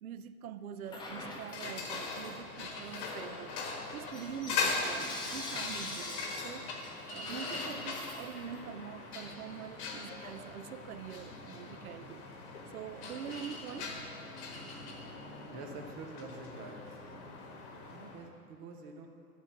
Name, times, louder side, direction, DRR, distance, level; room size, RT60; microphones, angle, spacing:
voice 1, 0.0-3.6 3.9-6.7 7.1-12.3 12.7-14.0, right 8 dB, 70° right, 12 dB, 0.6 m, -44 dB
sound 1, 0.8-18.3, left 4 dB, 45° left, 1.6 m, -41 dB
Bell / Coin (dropping), 0.9-2.4 2.8-8.8, left 2 dB, 10° left, 0.8 m, -45 dB
voice 2, 15.4-17.0 17.9-19.1, right 3 dB, 15° right, 2 dB, 0.3 m, -47 dB
12.0 x 4.3 x 7.0 m, 2.4 s
hypercardioid pair, 120°, 46 cm